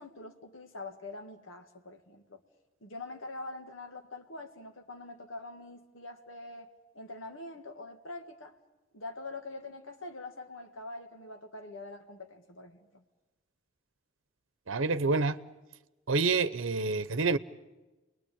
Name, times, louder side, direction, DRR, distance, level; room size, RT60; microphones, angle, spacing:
voice 1, 0.0-2.4 2.8-6.7 6.9-8.6 8.9-13.0, left 2 dB, 85° left, 2.1 m, -44 dB
voice 2, 14.7-15.4 16.1-17.4, right 4 dB, 85° right, 0.8 m, -27 dB
29.5 x 22.0 x 8.7 m
head